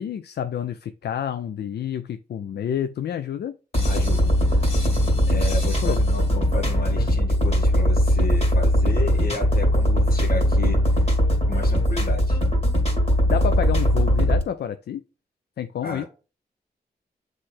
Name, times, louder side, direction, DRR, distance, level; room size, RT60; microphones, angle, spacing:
voice 1, 0.0-3.6 5.8-6.0 13.3-15.0 15.6-16.0, left 9 dB, 80° left, 0.4 m, -29 dB
sound 1, 3.7-14.4, equal, 40° left, 2.2 m, -20 dB
voice 2, 3.9-4.4 5.3-11.2 11.4-12.4 13.0-13.1 15.8-16.1, left 2 dB, 65° left, 1.7 m, -33 dB
7.6 x 3.2 x 4.2 m
cardioid pair, 65°, 17 cm